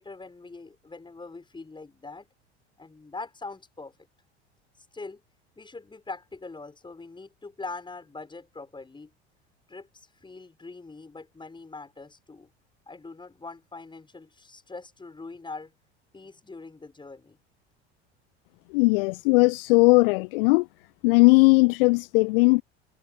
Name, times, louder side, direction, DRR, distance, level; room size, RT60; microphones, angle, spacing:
voice 1, 0.0-2.3 2.8-3.9 4.8-5.2 5.6-9.1 9.7-12.5 12.9-15.7 16.1-17.4, left 3 dB, 15° left, 6.1 m, -42 dB
voice 2, 18.7-20.7 21.0-22.6, left 27 dB, 55° left, 0.6 m, -19 dB
figure-of-eight pair, 70°, 34 cm